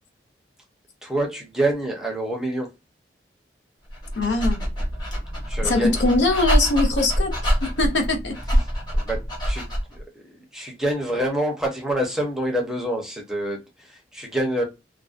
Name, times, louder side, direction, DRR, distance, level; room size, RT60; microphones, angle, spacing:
voice 1, 1.0-2.7 5.5-6.0 8.9-14.6, right 1 dB, 5° right, 0.6 m, -27 dB
Dog, 3.9-10.0, equal, 25° left, 0.9 m, -25 dB
voice 2, 4.1-4.6 5.6-7.3 7.6-8.4, left 2 dB, 80° left, 0.6 m, -22 dB
2.5 x 2.0 x 2.4 m
head